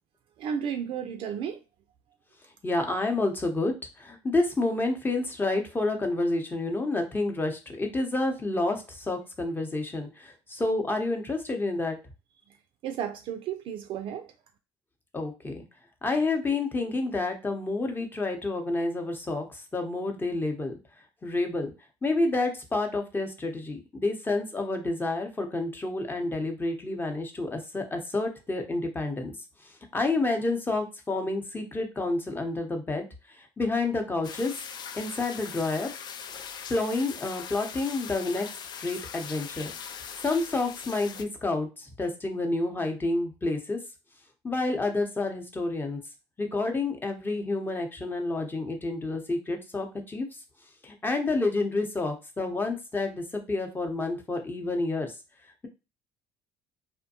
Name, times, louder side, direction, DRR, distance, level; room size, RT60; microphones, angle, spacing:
voice 1, 0.4-1.6 12.8-14.3, right 8 dB, 55° right, 0.4 m, -33 dB
voice 2, 2.6-12.0 15.1-15.6 16.0-20.7 21.2-21.7 22.0-29.3 29.9-33.1 33.4-34.5 34.9-35.9 36.7-38.5 38.8-39.7 40.2-43.8 44.4-46.0 46.4-50.3 50.8-55.1, left 2 dB, 20° left, 0.8 m, -29 dB
sound 1, 34.2-41.3, left 7 dB, 45° left, 0.4 m, -41 dB
2.6 x 2.1 x 2.8 m
hypercardioid pair, 70°, 10 cm